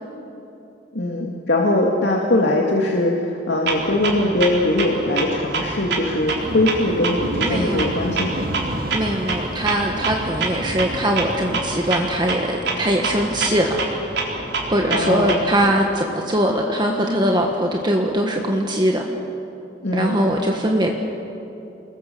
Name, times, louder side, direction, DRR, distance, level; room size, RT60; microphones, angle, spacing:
voice 1, 0.9-8.5 14.9-15.3 19.8-20.2, left 1 dB, 90° left, -1 dB, 2.3 m, -21 dB
Clock, 3.7-15.7, right 3 dB, 75° right, 4.1 m, -27 dB
sound 1, 6.4-11.8, right 1 dB, 55° right, 2.1 m, -31 dB
voice 2, 7.4-7.8 8.9-13.8 14.7-19.1 19.9-20.9, equal, 25° right, 1 dB, 1.5 m, -21 dB
29.5 x 21.0 x 7.0 m, 2.9 s
head